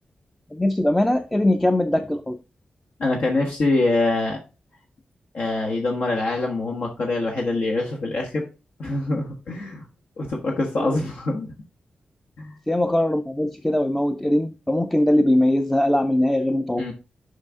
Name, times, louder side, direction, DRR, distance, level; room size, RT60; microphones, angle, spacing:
voice 1, 0.5-2.4 10.8-10.9 12.7-16.9, left 1 dB, 10° left, 0.4 m, -21 dB
voice 2, 3.0-4.4 5.3-8.4 8.8-9.8 10.2-11.5 12.4-12.5 16.8-16.9, left 2 dB, 75° left, 1.3 m, -24 dB
6.5 x 5.5 x 3.6 m
wide cardioid pair, 130°, 3 cm